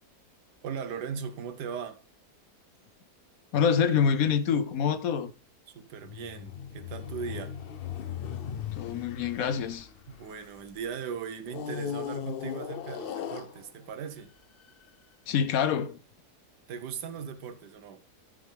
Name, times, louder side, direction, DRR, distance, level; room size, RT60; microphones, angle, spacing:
voice 1, 0.6-2.0 5.7-7.5 10.1-14.3 16.7-18.0, right 7 dB, 85° right, 1.5 m, -38 dB
voice 2, 3.5-5.3 8.8-9.9 15.3-16.0, left 7 dB, 65° left, 1.0 m, -26 dB
sound 1, 6.0-10.7 11.5-14.0 14.7-14.8, left 8 dB, 85° left, 0.5 m, -38 dB
12.5 x 6.4 x 3.4 m
omnidirectional pair, 1.7 m